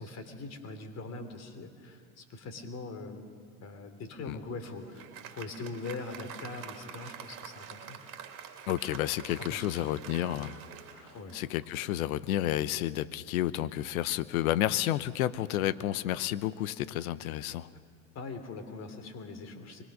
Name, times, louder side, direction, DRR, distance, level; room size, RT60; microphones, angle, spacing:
voice 1, 0.0-3.3 3.6-8.0 9.5-9.9 11.1-11.4 15.5-15.6 18.1-19.8, left 3 dB, 35° left, 8 dB, 3.1 m, -42 dB
Applause, 4.4-11.9, right 8 dB, 45° right, 2.5 m, -47 dB
voice 2, 8.7-10.6 10.9-17.7, left 13 dB, 70° left, 16 dB, 1.0 m, -31 dB
25.0 x 21.5 x 6.4 m, 2.1 s
hypercardioid pair, 100°, 44 cm